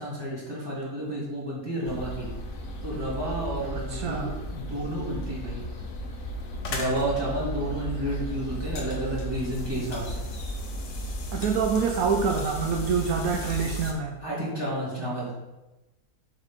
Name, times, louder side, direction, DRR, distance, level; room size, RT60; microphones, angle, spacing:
voice 1, 0.0-2.3 2.8-5.6 6.7-10.2 14.2-15.3, right 1 dB, 15° right, -7 dB, 2.3 m, -31 dB
sound 1, 1.8-13.9, equal, 60° left, 1.1 m, -35 dB
voice 2, 3.7-4.4 11.3-14.2, right 5 dB, 75° right, 3 dB, 1.1 m, -26 dB
7.9 x 4.4 x 3.6 m, 1.0 s
omnidirectional pair, 1.6 m